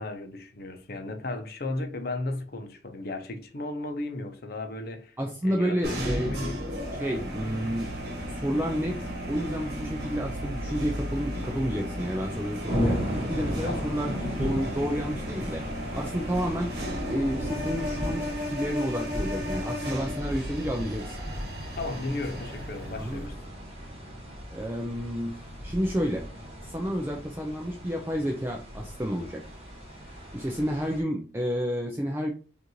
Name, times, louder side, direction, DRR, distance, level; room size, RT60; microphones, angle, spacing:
voice 1, 0.0-6.7 13.6-13.9 21.8-23.4, left 2 dB, 50° left, 0.7 m, -35 dB
voice 2, 5.2-6.3 6.9-7.9 8.3-13.0 13.3-14.1 14.4-16.7 17.0-21.2 23.0-23.2 24.5-25.3 25.6-26.3 26.6-29.4 30.3-32.3, equal, 10° right, 0.4 m, -30 dB
sound 1, 5.8-23.3, equal, 55° right, 1.3 m, -35 dB
sound 2, 12.7-31.0, equal, 30° right, 1.6 m, -36 dB
5.1 x 2.6 x 3.0 m
head